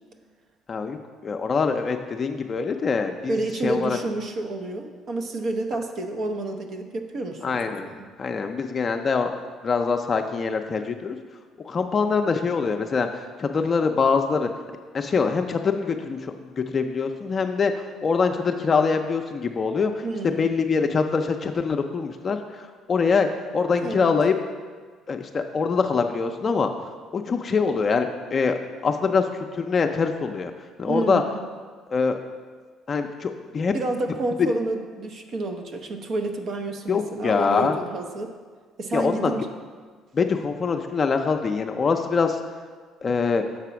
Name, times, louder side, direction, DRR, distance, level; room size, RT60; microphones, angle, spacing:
voice 1, 1.2-3.4 3.6-4.0 7.4-7.9 8.2-9.3 9.6-11.2 11.6-14.5 14.9-16.3 16.7-17.7 18.0-19.9 20.4-22.4 22.9-24.3 25.1-26.7 27.1-28.5 28.8-30.5 30.8-31.2 31.9-32.2 32.9-33.7 36.9-37.8 38.9-39.3 40.1-42.4 43.0-43.4, left 5 dB, 40° left, 5 dB, 0.4 m, -24 dB
voice 2, 3.3-8.1 20.0-20.5 23.8-24.1 30.8-31.4 33.7-38.3 38.8-39.5 40.3-40.4, right 2 dB, 55° right, 5 dB, 0.8 m, -29 dB
6.8 x 4.1 x 5.8 m, 1.5 s
supercardioid pair, 85°, 0 cm